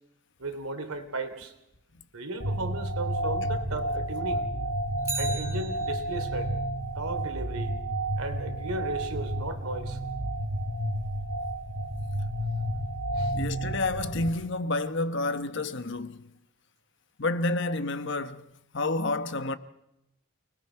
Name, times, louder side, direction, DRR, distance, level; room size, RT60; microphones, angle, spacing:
voice 1, 0.4-1.5 2.1-4.5 5.2-6.5 6.9-7.7 8.2-10.0 13.1-13.4, right 2 dB, 80° right, 3.0 m, -35 dB
sound 1, 2.4-14.3, right 1 dB, 60° right, 1.7 m, -31 dB
Bicycle, 5.0-6.4 14.7-14.8, right 3 dB, 15° right, 1.6 m, -37 dB
voice 2, 13.3-16.3 17.2-18.4 18.7-19.6, left 2 dB, 55° left, 1.0 m, -29 dB
29.0 x 20.5 x 4.5 m
head